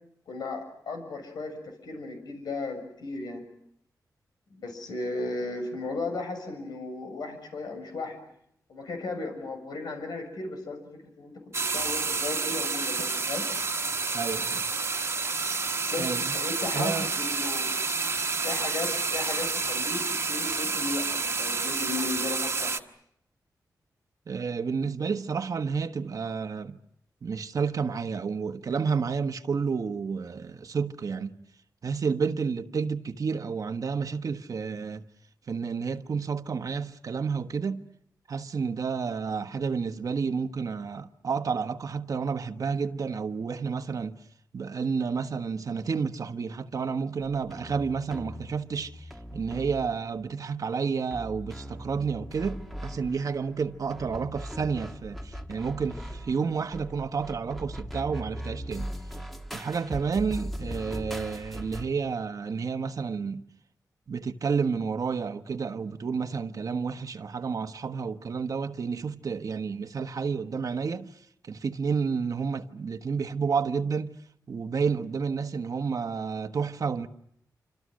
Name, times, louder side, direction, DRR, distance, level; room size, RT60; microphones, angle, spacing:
voice 1, 0.3-3.5 4.5-8.2 8.7-10.8 11.2-11.3 11.7-13.4 15.9-17.7 18.4-20.0 20.3-22.8 60.6-60.8, left 3 dB, 85° left, 7.0 m, -35 dB
sound 1, 11.5-22.8, right 4 dB, 40° right, 1.4 m, -29 dB
voice 2, 14.1-14.7 16.0-16.3 16.7-17.1 24.3-26.8 27.2-31.3 31.8-35.0 35.5-37.8 38.3-44.2 44.5-58.9 59.5-63.4 64.1-71.1 71.4-74.2 74.5-77.1, right 5 dB, 60° right, 1.2 m, -30 dB
sound 2, 47.4-50.3 51.1-61.9, equal, ahead, 1.7 m, -39 dB
28.0 x 26.0 x 6.4 m
wide cardioid pair, 95°, 7 cm